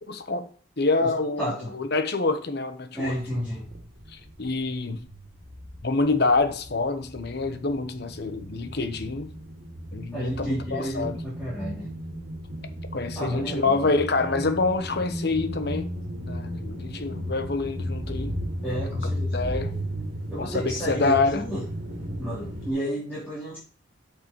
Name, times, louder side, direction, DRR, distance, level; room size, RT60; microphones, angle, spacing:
voice 1, 0.1-0.5 0.8-3.4 4.1-5.0 5.8-9.3 9.9-11.2 12.9-15.9 16.3-18.4 19.0-19.7 20.4-21.4, left 3 dB, 50° left, 1.0 m, -26 dB
voice 2, 1.4-1.8 2.9-3.7 10.1-11.9 13.2-13.9 18.6-19.3 19.5-19.8 20.3-21.6 22.2-23.6, equal, 10° left, 3.5 m, -31 dB
sound 1, 3.3-4.7 4.9-22.7, equal, 55° right, 2.4 m, -35 dB
8.6 x 6.6 x 3.1 m
head